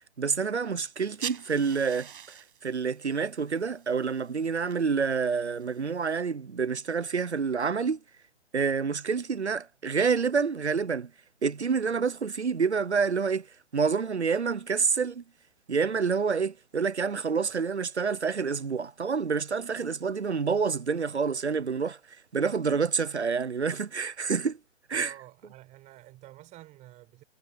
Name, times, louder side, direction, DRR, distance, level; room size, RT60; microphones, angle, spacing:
voice 1, 0.2-8.0 8.5-11.1 11.4-13.5 13.7-15.2 15.7-24.6 24.9-25.1, right 5 dB, 80° right, 0.9 m, -28 dB
sound 1, 1.0-6.2, right 8 dB, 50° right, 6.6 m, -45 dB
voice 2, 24.9-27.2, right 16 dB, 20° right, 5.8 m, -49 dB
figure-of-eight pair, 125°, 33 cm